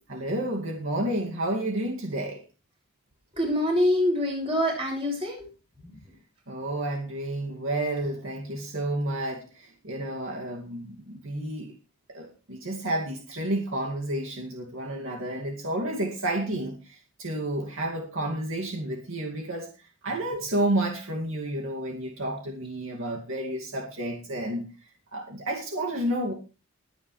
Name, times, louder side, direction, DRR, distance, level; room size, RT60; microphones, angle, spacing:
voice 1, 0.1-2.4 6.5-11.7 12.1-24.6 25.1-26.3, right 1 dB, 65° right, 0 dB, 2.3 m, -31 dB
voice 2, 3.3-5.5 5.9-6.0, left 1 dB, 25° right, 0 dB, 6.4 m, -25 dB
21.5 x 9.1 x 3.3 m, 0.33 s
head